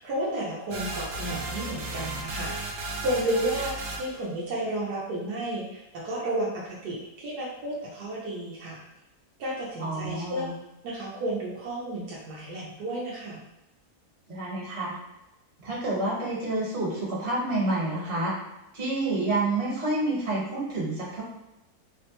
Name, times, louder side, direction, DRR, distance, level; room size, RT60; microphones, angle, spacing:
voice 1, 0.0-8.8 9.4-10.5 10.8-13.4, right 1 dB, 80° right, -5 dB, 1.3 m, -32 dB
sound 1, 0.7-4.2, right 2 dB, 60° right, 0.8 m, -34 dB
voice 2, 9.8-10.5 14.3-15.0 15.6-18.3 18.7-21.2, right 2 dB, 40° right, -5 dB, 1.5 m, -28 dB
4.2 x 2.1 x 2.9 m, 0.94 s
omnidirectional pair, 1.7 m